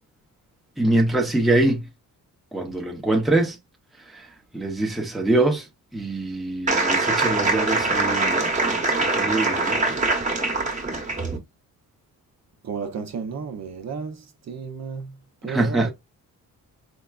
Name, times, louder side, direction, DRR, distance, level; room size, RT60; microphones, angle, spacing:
voice 1, 0.8-1.9 2.5-3.6 4.1-4.3 4.5-5.7 5.9-10.0 15.5-15.9, right 2 dB, ahead, 0.7 m, -24 dB
sound 1, 6.7-11.4, right 3 dB, 20° right, 1.0 m, -23 dB
voice 2, 12.6-14.2 14.5-15.1 15.4-15.9, right 6 dB, 50° right, 0.7 m, -32 dB
4.5 x 2.2 x 2.3 m
cardioid pair, 115°, 36 cm